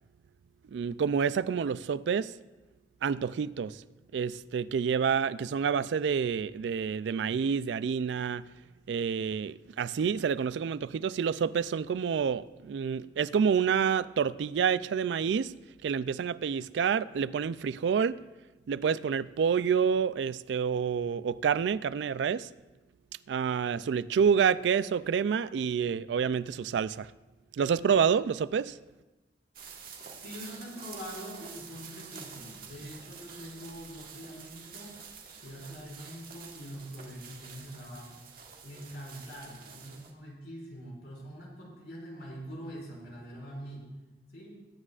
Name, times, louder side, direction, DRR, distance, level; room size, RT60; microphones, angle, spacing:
voice 1, 0.7-2.3 3.0-3.8 4.1-8.4 8.9-15.5 15.8-18.2 18.7-22.5 23.3-27.1 27.5-28.8, right 7 dB, 70° right, 0.3 m, -28 dB
sound 1, 29.5-40.1, right 6 dB, 55° right, 1.7 m, -48 dB
voice 2, 29.9-34.9 35.4-38.2 38.6-43.9 44.3-44.6, equal, 65° left, 4.7 m, -44 dB
22.0 x 9.8 x 2.4 m
head